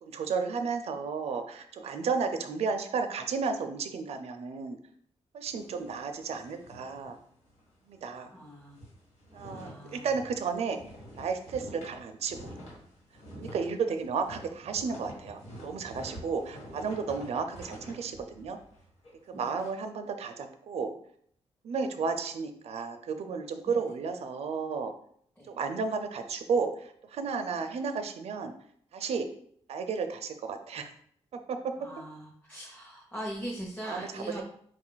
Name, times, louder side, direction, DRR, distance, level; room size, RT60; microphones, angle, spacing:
voice 1, 0.0-4.8 5.3-7.2 7.9-8.3 9.3-10.8 11.2-12.4 13.4-18.6 19.3-20.9 21.6-24.9 25.5-28.5 28.9-29.3 29.7-30.9 31.3-31.9 33.8-34.4, right 5 dB, 65° right, 6 dB, 0.4 m, -33 dB
sound 1, 5.4-7.7 8.0-8.2 8.5-19.7, equal, 80° left, 1.8 m, -48 dB
voice 2, 8.3-8.8 9.4-10.2 13.4-13.6 19.3-19.5 23.7-23.8 25.4-25.5 31.8-34.4, equal, 15° left, -4 dB, 0.8 m, -41 dB
4.7 x 2.4 x 3.8 m, 0.63 s
wide cardioid pair, 115°, 11 cm